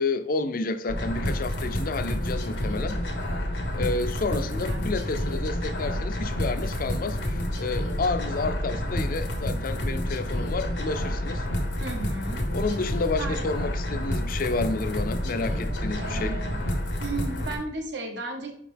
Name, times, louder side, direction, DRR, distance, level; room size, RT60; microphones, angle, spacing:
voice 1, 0.0-3.0 3.7-11.5 12.5-16.4, left 3 dB, 50° left, 0.5 m, -30 dB
sound 1, 0.9-17.6, left 1 dB, 90° left, 1.3 m, -29 dB
voice 2, 4.3-4.9 11.8-12.4 13.2-13.4 16.0-16.6 17.0-18.5, right 3 dB, 80° right, 1.4 m, -35 dB
5.6 x 4.9 x 3.5 m
head